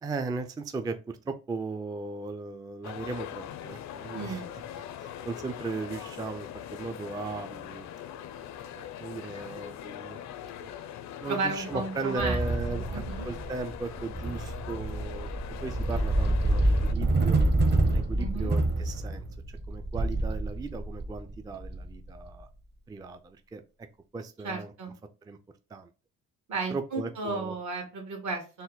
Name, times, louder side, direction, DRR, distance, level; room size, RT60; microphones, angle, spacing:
voice 1, 0.0-4.4 5.0-7.9 8.6-10.2 10.6-10.7 11.2-15.3 15.6-17.4 17.9-22.5 22.9-23.6 24.1-24.7 25.3-25.4 25.7-25.9 26.7-27.5, right 4 dB, 15° right, 8 dB, 0.3 m, -37 dB
sound 1, 2.8-16.9, left 10 dB, 65° left, 0.5 m, -42 dB
voice 2, 4.1-4.6 11.3-12.4 12.7-13.3 18.2-18.5 24.4-24.9 26.5-28.6, right 3 dB, 70° right, 3 dB, 1.6 m, -34 dB
sound 2, 12.2-22.4, right 2 dB, 35° right, 0.8 m, -27 dB
4.2 x 2.1 x 3.8 m, 0.32 s
cardioid pair, 90°, 30 cm